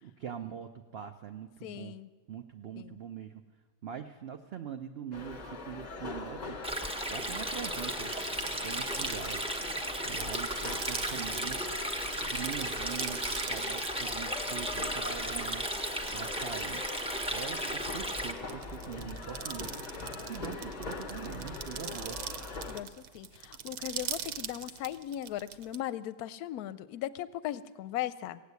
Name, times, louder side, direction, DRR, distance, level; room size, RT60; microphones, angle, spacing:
voice 1, 0.0-2.0 2.3-3.4 3.8-6.6 7.1-8.2 8.6-9.5 10.0-11.6 12.1-15.6 16.1-16.8 17.3-19.7 20.2-22.2, right 8 dB, 85° right, 7 dB, 0.5 m, -43 dB
voice 2, 1.6-2.1 2.8-3.0 22.7-22.9 23.1-28.4, left 12 dB, 70° left, 16 dB, 1.0 m, -38 dB
sound 1, 5.1-22.8, left 3 dB, 45° left, 0.5 m, -43 dB
Stream, 6.6-18.3, equal, 5° right, 0.5 m, -35 dB
sound 2, 7.6-25.8, right 8 dB, 70° right, 1.2 m, -43 dB
17.0 x 8.3 x 8.2 m, 1.5 s
omnidirectional pair, 1.8 m